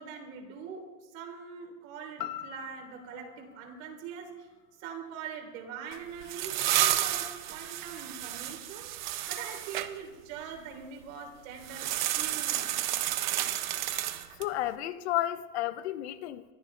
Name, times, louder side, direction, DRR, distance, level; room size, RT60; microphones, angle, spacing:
voice 1, 0.0-4.5 4.8-8.9 9.3-12.8, right 6 dB, 50° right, 3.3 m, -43 dB
sound 1, 2.2-6.3 6.7-6.8, left 12 dB, 80° left, 1.3 m, -45 dB
sound 2, 5.9-9.9 11.6-14.6, right 13 dB, 30° right, 0.5 m, -31 dB
voice 2, 14.4-16.5, left 14 dB, 45° left, 0.6 m, -32 dB
24.0 x 14.5 x 3.3 m
supercardioid pair, 175°, 48 cm